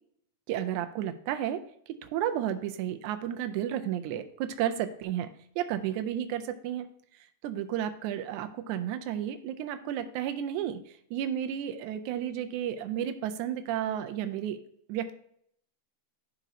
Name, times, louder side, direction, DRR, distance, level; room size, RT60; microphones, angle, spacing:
voice 1, 0.5-1.6 2.0-5.3 5.6-6.9 7.4-10.8 11.1-14.6 14.9-15.1, right 10 dB, 80° right, 9 dB, 1.9 m, -32 dB
11.5 x 4.0 x 2.7 m, 0.67 s
omnidirectional pair, 3.6 m